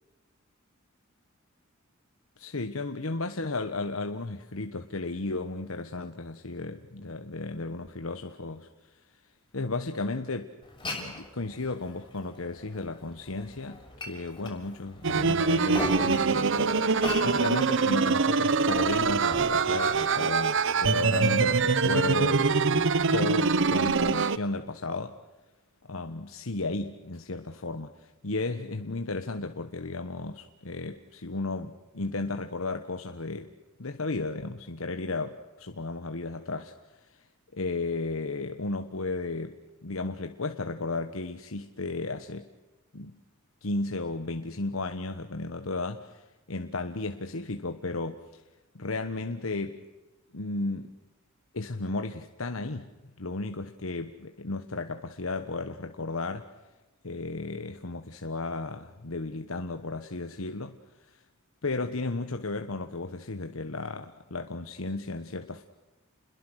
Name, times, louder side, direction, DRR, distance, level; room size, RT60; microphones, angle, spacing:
voice 1, 2.4-8.7 9.5-10.5 10.8-16.6 17.2-25.2 25.9-33.5 33.8-36.7 37.0-37.2 37.5-42.5 42.9-43.2 43.6-48.4 48.7-49.8 50.3-50.9 51.5-52.9 53.2-56.5 57.0-60.8 61.1-61.2 61.6-65.6, left 3 dB, 75° left, 7 dB, 1.3 m, -34 dB
Glass, 10.6-20.6, left 2 dB, 20° left, 6.3 m, -40 dB
sound 1, 15.0-24.4, right 4 dB, 60° right, 0.8 m, -24 dB
29.5 x 21.5 x 6.5 m, 1.1 s
head